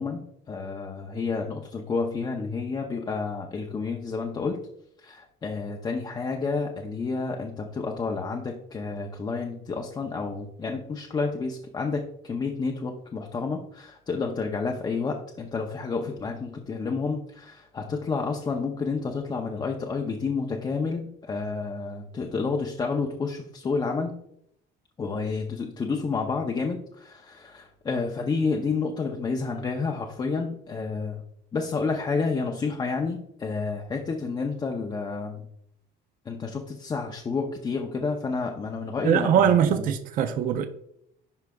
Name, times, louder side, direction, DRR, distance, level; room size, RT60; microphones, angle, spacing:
voice 1, 0.0-4.6 5.0-24.1 25.0-31.2 31.5-35.5 36.3-39.9, left 4 dB, 20° left, 2 dB, 0.5 m, -30 dB
voice 2, 39.0-40.7, right 9 dB, 45° right, 8 dB, 0.5 m, -22 dB
11.0 x 4.6 x 2.3 m, 0.72 s
cardioid pair, 165°, 20 cm